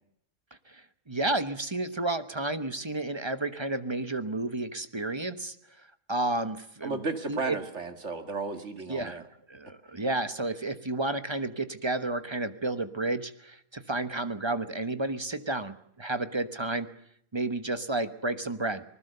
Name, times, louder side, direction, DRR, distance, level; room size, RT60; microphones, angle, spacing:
voice 1, 0.7-5.6 6.1-7.0 7.3-7.6 8.9-16.9 17.3-18.8, right 2 dB, 20° right, 11 dB, 1.1 m, -31 dB
voice 2, 6.8-9.2, right 4 dB, 55° right, 7 dB, 2.4 m, -34 dB
26.0 x 20.0 x 6.8 m, 0.71 s
omnidirectional pair, 1.5 m